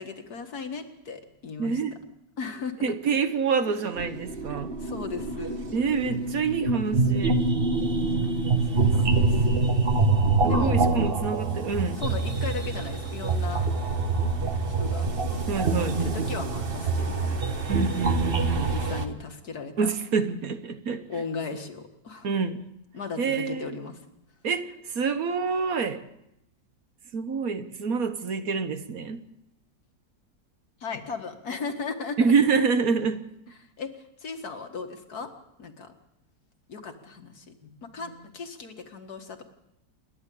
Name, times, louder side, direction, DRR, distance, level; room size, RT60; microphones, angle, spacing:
voice 1, 0.0-1.8 2.4-2.9 4.5-5.6 8.7-9.8 10.5-10.8 11.9-13.7 14.8-15.1 15.7-17.4 18.6-19.9 21.1-22.3 22.9-24.1 30.8-32.3 33.6-35.3 35.6-35.9 36.7-39.4, left 5 dB, 65° left, 6 dB, 2.2 m, -37 dB
voice 2, 1.6-2.0 2.8-4.8 5.7-7.4 10.4-12.0 15.5-16.0 17.7-18.7 19.8-21.1 22.2-22.6 23.2-23.7 24.4-26.0 27.1-29.2 32.2-33.2, right 5 dB, 60° right, 10 dB, 1.6 m, -27 dB
sound 1, 3.7-19.1, right 3 dB, 35° right, 1.4 m, -25 dB
28.5 x 10.5 x 8.6 m, 0.83 s
omnidirectional pair, 1.8 m